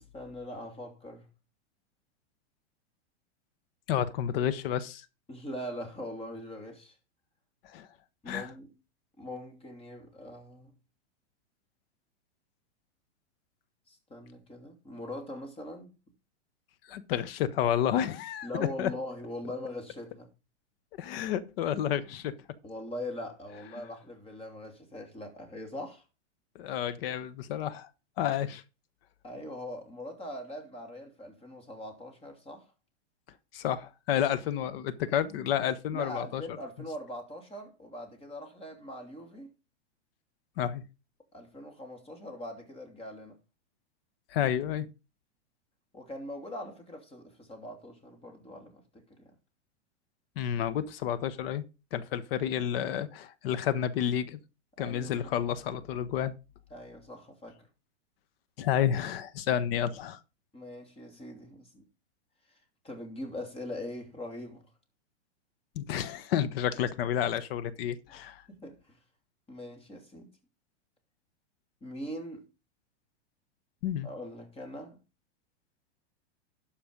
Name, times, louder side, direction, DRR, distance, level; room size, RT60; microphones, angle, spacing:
voice 1, 0.1-1.3 5.3-7.0 8.2-8.7 9.2-10.7 13.9-15.9 18.4-20.3 22.6-26.0 29.2-32.7 35.9-39.5 41.3-43.4 45.9-49.3 54.8-55.3 56.7-57.7 60.5-61.9 62.5-64.7 68.1-68.2 68.5-69.0 69.5-70.3 71.8-72.5 74.0-75.0, left 1 dB, 15° left, 2.8 m, -42 dB
voice 2, 3.9-5.0 7.6-7.9 8.3-8.5 16.9-18.9 21.0-22.3 26.5-27.9 28.2-28.6 33.5-36.4 40.6-40.8 44.3-44.9 50.4-51.6 51.9-54.4 54.8-56.3 58.6-60.2 65.8-68.4 73.8-74.1, left 10 dB, 55° left, 1.1 m, -30 dB
12.0 x 5.2 x 5.2 m
hypercardioid pair, 130°, 35 cm